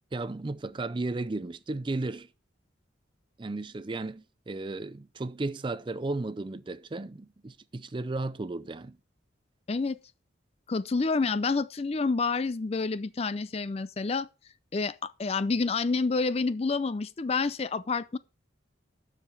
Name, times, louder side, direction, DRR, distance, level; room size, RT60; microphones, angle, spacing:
voice 1, 0.1-2.3 3.4-9.0, right 2 dB, 25° right, 0.4 m, -34 dB
voice 2, 9.7-10.0 10.7-14.3 14.7-18.2, left 4 dB, 30° left, 0.4 m, -28 dB
12.5 x 5.0 x 5.3 m
head